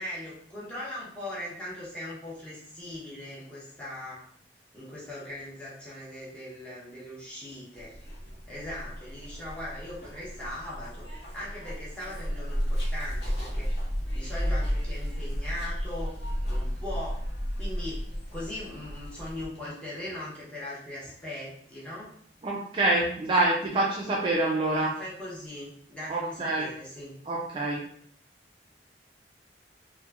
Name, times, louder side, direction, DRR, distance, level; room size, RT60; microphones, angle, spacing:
voice 1, 0.0-4.2 4.7-7.9 8.5-13.7 14.1-16.2 16.5-17.3 17.5-22.1 24.7-27.1, left 1 dB, 5° left, -8 dB, 0.8 m, -40 dB
Zipper (clothing), 7.7-19.5, equal, 70° left, 0.7 m, -33 dB
voice 2, 22.4-24.9 26.1-26.7 27.3-27.8, right 2 dB, 30° right, -4 dB, 0.3 m, -26 dB
2.9 x 2.1 x 2.3 m, 0.62 s
head